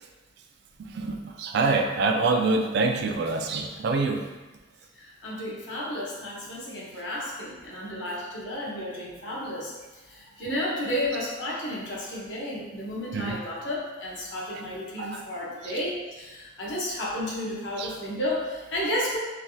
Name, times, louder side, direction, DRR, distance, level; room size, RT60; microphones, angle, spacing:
voice 1, 0.9-4.2 13.1-13.4 15.0-15.2 15.6-15.7 17.8-17.9, right 3 dB, 60° right, 3 dB, 0.3 m, -26 dB
voice 2, 5.0-9.7 10.1-19.2, left 1 dB, 70° left, -5 dB, 0.8 m, -32 dB
3.2 x 2.3 x 2.6 m, 1.2 s
head